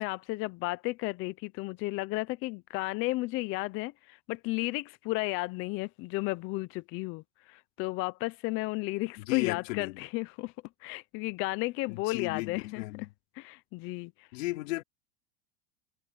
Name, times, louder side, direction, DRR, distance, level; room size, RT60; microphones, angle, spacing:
voice 1, 0.0-10.5 10.8-13.1 13.4-14.3, left 21 dB, 35° left, 0.5 m, -33 dB
voice 2, 9.2-10.0 11.9-13.1 14.3-14.8, left 21 dB, 80° left, 4.3 m, -34 dB
supercardioid pair, 155°, 38 cm